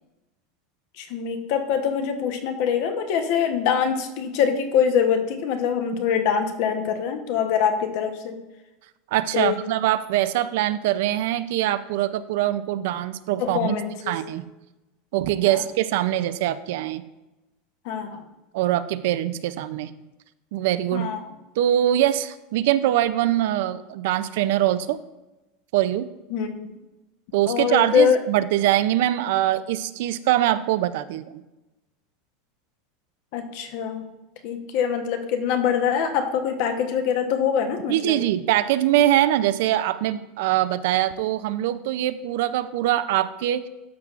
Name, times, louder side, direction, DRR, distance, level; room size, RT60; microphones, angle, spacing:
voice 1, 1.0-8.4 9.3-9.6 13.4-14.2 15.5-15.6 17.8-18.2 20.9-21.2 26.3-26.7 27.5-28.2 33.3-34.0 34.4-38.2, left 7 dB, 50° left, 6 dB, 0.9 m, -24 dB
voice 2, 9.1-13.8 14.1-14.4 15.1-17.0 18.5-19.9 20.5-21.1 21.6-25.0 25.7-26.1 27.3-31.4 37.9-43.7, right 13 dB, 65° right, 13 dB, 0.4 m, -23 dB
13.0 x 6.0 x 2.4 m, 1.0 s
supercardioid pair, 170°, 0 cm